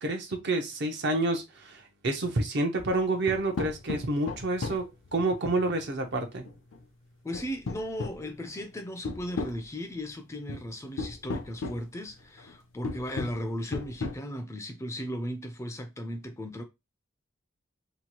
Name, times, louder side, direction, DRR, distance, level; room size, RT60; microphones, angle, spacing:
voice 1, 0.0-6.4, right 2 dB, 60° right, 0.6 m, -29 dB
sound 1, 2.8-2.9 3.3-5.2 6.4-6.8 7.3-8.6 9.0-9.6 10.5-10.7 11.0-11.8 12.4-12.5 12.8-13.4 13.7-14.2, left 3 dB, 85° left, 0.5 m, -34 dB
voice 2, 7.2-16.6, equal, 15° left, 0.3 m, -36 dB
2.8 x 2.2 x 2.9 m
head